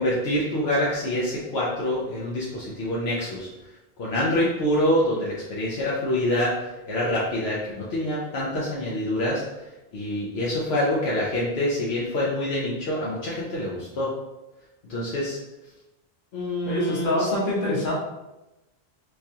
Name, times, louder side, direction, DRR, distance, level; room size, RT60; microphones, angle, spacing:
voice 1, 0.0-3.5 4.0-14.1 14.8-15.4 16.3-17.3, left 1 dB, 80° left, -5 dB, 0.9 m, -26 dB
voice 2, 16.6-17.9, left 1 dB, 55° left, -6 dB, 1.3 m, -25 dB
4.6 x 2.3 x 2.7 m, 1.0 s
omnidirectional pair, 1.1 m